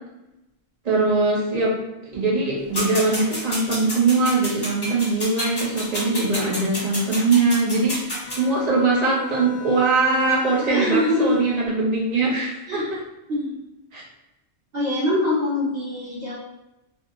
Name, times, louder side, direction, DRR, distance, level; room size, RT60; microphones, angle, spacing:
voice 1, 0.8-1.8 2.1-12.8 13.9-14.0, right 3 dB, 40° right, -5 dB, 0.8 m, -21 dB
sound 1, 2.7-8.4, equal, 25° left, 0.6 m, -30 dB
Bowed string instrument, 8.2-11.9, left 7 dB, 90° left, 0.9 m, -37 dB
voice 2, 10.6-11.4 12.7-12.9 13.3-13.6 14.7-16.4, left 1 dB, 60° right, -12 dB, 1.2 m, -23 dB
2.7 x 2.7 x 2.5 m, 0.94 s
omnidirectional pair, 1.2 m